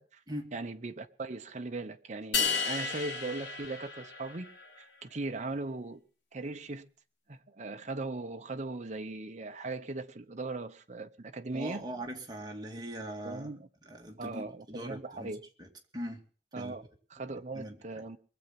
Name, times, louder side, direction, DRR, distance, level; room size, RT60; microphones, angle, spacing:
voice 1, 0.5-4.5 4.8-6.0 6.3-6.9 7.3-11.8 13.2-13.7 14.2-15.4 16.5-18.2, right 2 dB, 45° right, 0.9 m, -39 dB
sound 1, 2.3-4.6, left 5 dB, 75° left, 2.6 m, -33 dB
voice 2, 11.5-13.5 13.9-15.3 15.6-16.2 16.5-16.7 17.3-17.8, equal, 25° right, 2.5 m, -41 dB
22.5 x 8.0 x 5.9 m
head